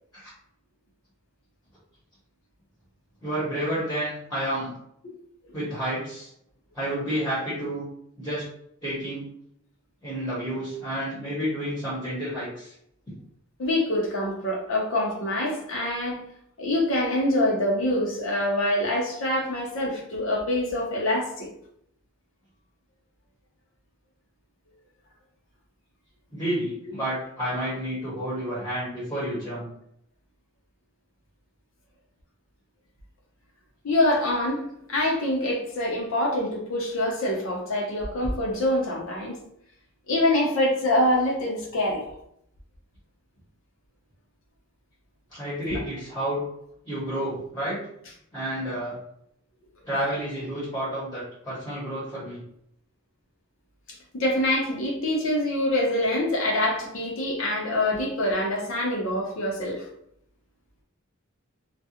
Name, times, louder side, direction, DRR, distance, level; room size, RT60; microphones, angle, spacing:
voice 1, 3.2-4.7 5.5-6.3 6.7-7.9 8.2-8.4 8.8-9.3 10.0-12.7 26.3-29.7 45.3-46.5 46.9-47.9 48.3-49.0 49.8-52.4, right 1 dB, 10° left, -9 dB, 0.9 m, -30 dB
voice 2, 13.6-16.2 16.6-21.5 33.8-34.6 34.9-39.4 40.1-42.0 45.7-45.8 54.1-59.9, left 1 dB, 70° left, -2 dB, 0.7 m, -25 dB
2.4 x 2.2 x 2.8 m, 0.72 s
head